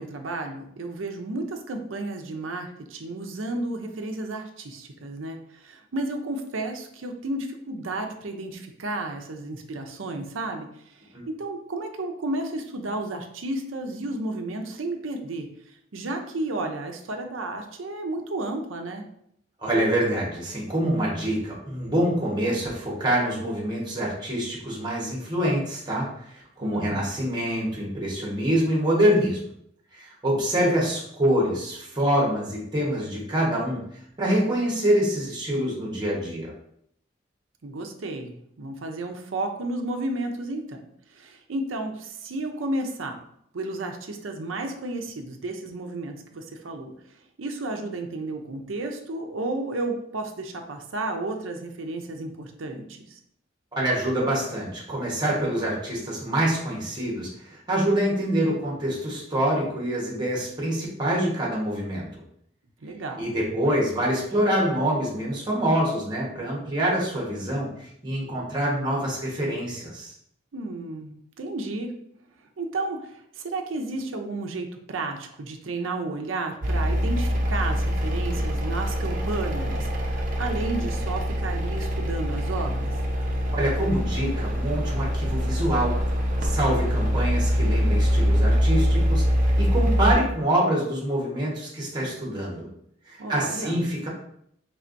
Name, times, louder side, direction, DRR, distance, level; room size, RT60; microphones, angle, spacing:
voice 1, 0.0-10.7 11.4-15.5 15.9-19.0 26.6-27.1 37.6-40.9 41.1-43.2 43.5-46.9 47.4-53.2 62.8-63.3 70.5-71.9 72.6-82.9 93.2-93.8, right 2 dB, 90° right, 4 dB, 0.6 m, -32 dB
voice 2, 19.6-29.4 29.9-33.8 34.2-36.5 53.7-62.2 63.2-70.1 83.5-86.0 86.4-92.7 93.1-94.1, right 1 dB, 20° right, -3 dB, 1.2 m, -25 dB
sound 1, 76.6-90.1, equal, 45° right, 0.7 m, -24 dB
4.4 x 3.4 x 2.6 m, 0.72 s
head